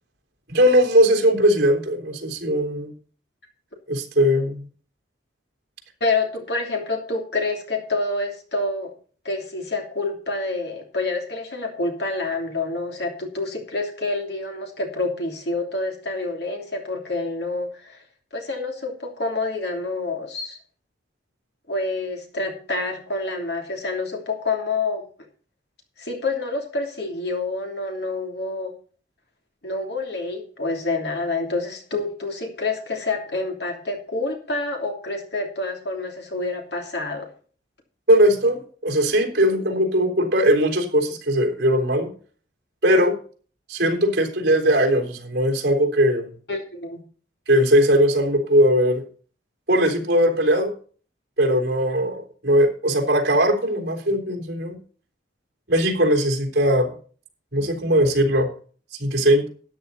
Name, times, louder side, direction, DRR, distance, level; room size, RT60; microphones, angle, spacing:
voice 1, 0.5-2.9 3.9-4.6 38.1-42.1 42.8-43.2 43.7-46.3 47.5-49.0 49.7-50.7 51.4-54.8 55.7-56.9 57.5-58.5 59.0-59.4, equal, 55° right, 2 dB, 3.6 m, -19 dB
voice 2, 6.0-8.9 9.2-18.0 18.3-20.6 21.7-25.0 26.0-28.7 29.6-37.3 46.5-47.0, left 3 dB, 60° left, 2 dB, 3.1 m, -27 dB
13.0 x 9.8 x 4.1 m, 0.41 s
head